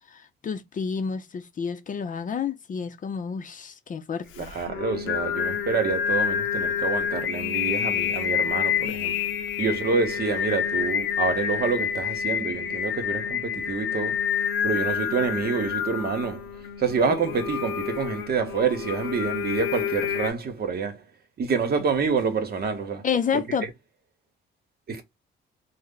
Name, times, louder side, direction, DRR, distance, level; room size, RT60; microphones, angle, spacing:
voice 1, 0.1-4.5 23.0-23.7, left 6 dB, 40° left, 0.5 m, -29 dB
Singing, 4.3-20.3, left 8 dB, 90° left, 0.6 m, -28 dB
voice 2, 4.4-9.3 9.6-14.4 14.6-21.0 21.4-23.0 23.3-23.4 24.9-25.0, right 5 dB, 50° right, 1.0 m, -27 dB
3.1 x 2.1 x 3.6 m
cardioid pair, 90°, 20 cm